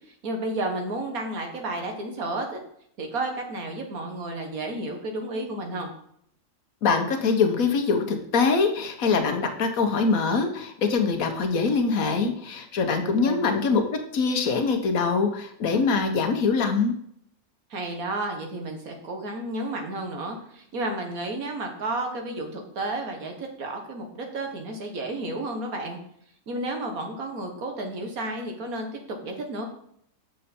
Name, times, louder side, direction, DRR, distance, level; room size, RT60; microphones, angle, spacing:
voice 1, 0.2-2.6 3.0-5.9 13.0-13.4 17.7-26.0 26.5-29.7, right 2 dB, 75° right, 3 dB, 1.7 m, -32 dB
voice 2, 6.8-16.9, left 4 dB, 70° left, 6 dB, 1.3 m, -23 dB
6.7 x 6.3 x 4.3 m, 0.68 s
omnidirectional pair, 1.5 m